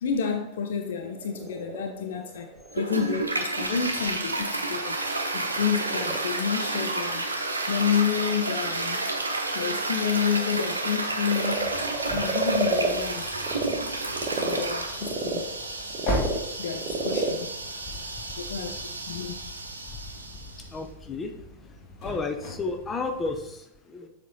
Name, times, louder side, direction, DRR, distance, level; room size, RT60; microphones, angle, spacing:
voice 1, 0.0-5.0 5.3-7.3 7.7-9.0 9.5-11.7 12.1-13.3 14.4-15.5 16.6-17.5 18.4-18.7 19.1-19.4, left 7 dB, 60° left, 5 dB, 0.6 m, -29 dB
Frog, 0.9-13.8 14.1-18.8, right 4 dB, 30° right, 1.1 m, -34 dB
Toilet flush, 2.7-20.7, right 2 dB, 80° right, 0.8 m, -31 dB
sound 1, 11.5-23.5, left 1 dB, 35° left, 2.1 m, -39 dB
voice 2, 20.7-21.3 22.0-24.1, left 3 dB, 20° left, 5 dB, 0.8 m, -32 dB
7.4 x 4.4 x 4.0 m, 0.82 s
figure-of-eight pair, 90°, 0 cm